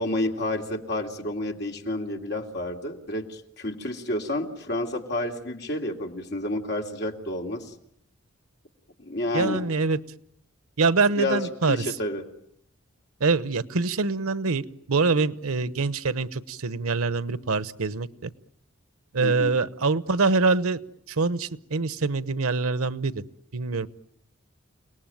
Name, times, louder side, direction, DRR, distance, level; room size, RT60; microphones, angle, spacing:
voice 1, 0.0-7.7 9.0-9.6 11.2-11.4 11.7-12.2 19.2-19.6, left 1 dB, 50° left, 2 dB, 3.0 m, -30 dB
voice 2, 9.3-10.0 10.8-11.9 13.2-18.3 19.1-20.8 21.1-23.2 23.5-23.9, right 4 dB, 90° right, 15 dB, 1.0 m, -24 dB
29.5 x 19.0 x 9.2 m, 0.73 s
head